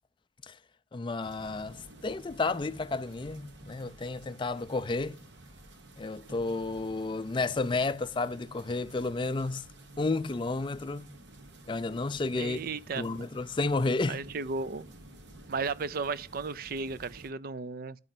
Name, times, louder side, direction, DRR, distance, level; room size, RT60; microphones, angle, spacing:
voice 1, 0.9-5.2 6.0-9.6 10.0-11.1 11.7-12.6 12.9-14.2, left 3 dB, 30° left, 0.4 m, -31 dB
sound 1, 1.2-17.3, right 1 dB, 85° right, 1.5 m, -51 dB
voice 2, 12.4-13.3 14.1-14.8 15.5-18.0, right 4 dB, 55° right, 0.4 m, -35 dB
11.0 x 5.2 x 5.9 m
head